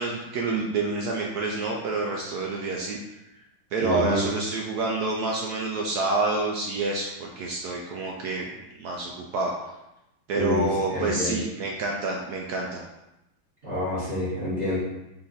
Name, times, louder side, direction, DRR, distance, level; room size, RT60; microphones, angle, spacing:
voice 1, 0.0-3.0 3.7-8.5 8.8-9.5 10.3-12.8, right 3 dB, 80° right, -1 dB, 0.8 m, -28 dB
voice 2, 3.8-4.3 10.3-11.4 13.6-14.8, left 1 dB, 30° right, -10 dB, 1.5 m, -28 dB
3.9 x 3.3 x 4.0 m, 0.93 s
omnidirectional pair, 2.3 m